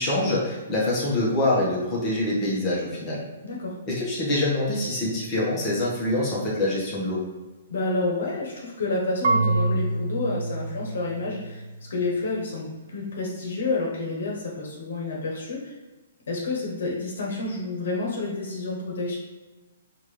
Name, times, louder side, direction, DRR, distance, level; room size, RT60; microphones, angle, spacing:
voice 1, 0.0-3.2 3.9-7.2, left 1 dB, 20° left, -5 dB, 1.0 m, -25 dB
voice 2, 3.4-3.7 7.7-11.6 11.9-15.7 16.3-19.2, left 2 dB, 75° left, -2 dB, 0.9 m, -29 dB
Marimba xylophone / Wood, 9.2-12.1, right 2 dB, 65° right, 0.5 m, -27 dB
5.1 x 2.5 x 3.1 m, 1.2 s
hypercardioid pair, 165°, 0 cm